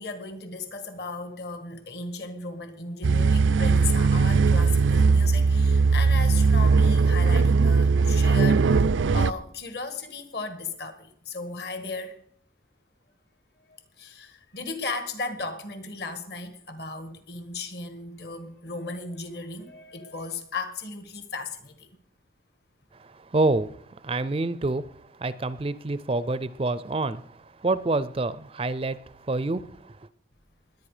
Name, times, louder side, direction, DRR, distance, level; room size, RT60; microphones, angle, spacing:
voice 1, 0.0-12.2 13.7-21.9, left 3 dB, 55° left, 1.8 m, -36 dB
sound 1, 3.0-9.3, right 4 dB, 80° right, 0.5 m, -19 dB
voice 2, 23.0-23.7 24.0-24.8 25.2-27.2 27.6-29.0 29.3-29.8, right 2 dB, 30° right, 0.4 m, -27 dB
20.0 x 9.2 x 5.0 m
head